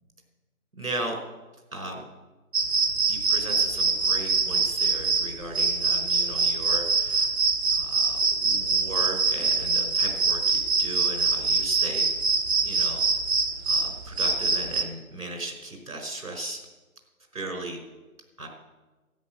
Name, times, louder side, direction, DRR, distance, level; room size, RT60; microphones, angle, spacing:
voice 1, 0.8-1.2 1.7-2.0 3.1-7.3 7.7-12.0 12.6-13.1 13.7-16.6 17.3-17.8 18.4-18.5, right 2 dB, 65° right, 3 dB, 4.4 m, -36 dB
sound 1, 2.5-14.8, right 4 dB, 45° right, 1.1 m, -24 dB
12.5 x 9.6 x 7.6 m, 1.2 s
figure-of-eight pair, 150°, 44 cm